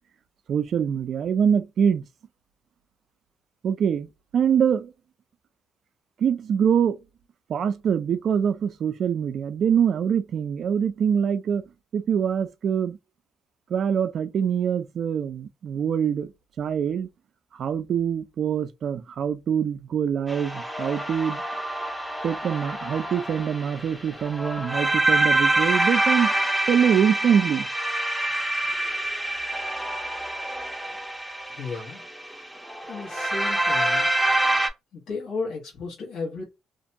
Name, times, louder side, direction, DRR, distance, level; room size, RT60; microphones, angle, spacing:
voice 1, 0.5-2.0 3.6-4.9 6.2-7.0 7.5-11.6 11.9-13.0 13.7-16.3 16.6-17.1 17.5-21.4 22.2-26.3 26.7-27.7, right 8 dB, 60° right, 0.3 m, -24 dB
sound 1, 20.3-34.7, right 1 dB, ahead, 0.5 m, -26 dB
voice 2, 31.5-32.0 32.9-34.1 34.9-36.4, left 4 dB, 75° left, 1.0 m, -34 dB
2.5 x 2.2 x 2.6 m
cardioid pair, 90°, 0 cm